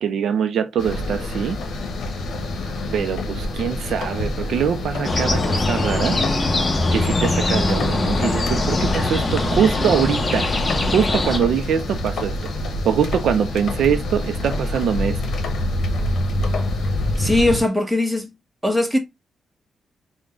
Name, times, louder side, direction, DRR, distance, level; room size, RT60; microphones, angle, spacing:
voice 1, 0.0-1.6 2.9-6.2 6.9-10.5 10.8-12.3 12.8-15.2, right 7 dB, 75° right, 0.4 m, -23 dB
sound 1, 0.8-17.6, left 1 dB, 70° left, 0.8 m, -27 dB
sound 2, 5.0-11.4, left 2 dB, 30° left, 0.7 m, -22 dB
voice 2, 17.2-18.3 18.6-19.0, left 1 dB, ahead, 1.0 m, -19 dB
3.7 x 2.1 x 3.5 m
cardioid pair, 100°, 0 cm